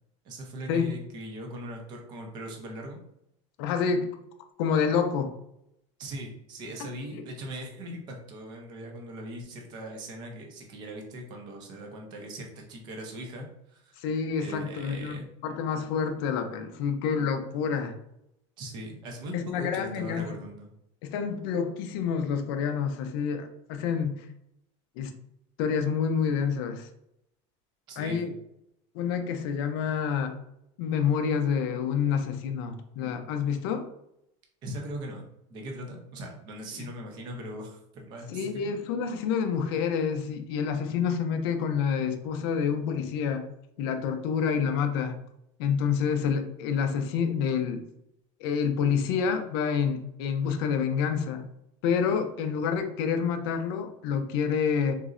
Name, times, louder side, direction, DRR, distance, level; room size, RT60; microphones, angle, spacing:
voice 1, 0.2-3.0 6.0-14.1 14.4-15.3 18.6-20.7 27.9-28.3 34.6-35.2 35.5-38.7, right 1 dB, 30° right, 2 dB, 0.5 m, -40 dB
voice 2, 3.6-4.1 4.6-5.3 7.1-7.2 14.0-17.9 19.3-20.3 21.0-24.3 25.0-25.1 25.6-26.9 28.0-28.3 28.9-30.3 30.8-33.9 38.3-43.4 43.8-45.2 45.6-47.8 48.4-51.4 51.8-55.0, left 6 dB, 50° left, 7 dB, 0.4 m, -28 dB
3.8 x 2.0 x 2.4 m, 0.79 s
supercardioid pair, 180°, 16 cm